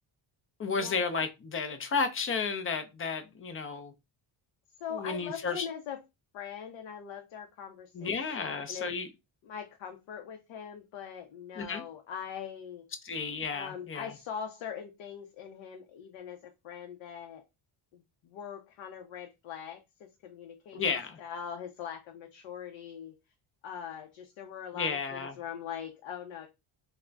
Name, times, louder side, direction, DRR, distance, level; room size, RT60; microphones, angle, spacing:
voice 1, 0.6-3.9 5.0-5.7 7.9-9.1 11.6-11.8 13.0-14.1 20.7-21.2 24.7-25.3, left 5 dB, 30° left, 0.4 m, -32 dB
voice 2, 4.8-6.0 6.3-8.9 9.4-12.9 13.5-17.4 17.9-23.1 23.6-26.5, left 8 dB, 90° left, 0.6 m, -42 dB
2.4 x 2.0 x 3.3 m
cardioid pair, 140°, 45 cm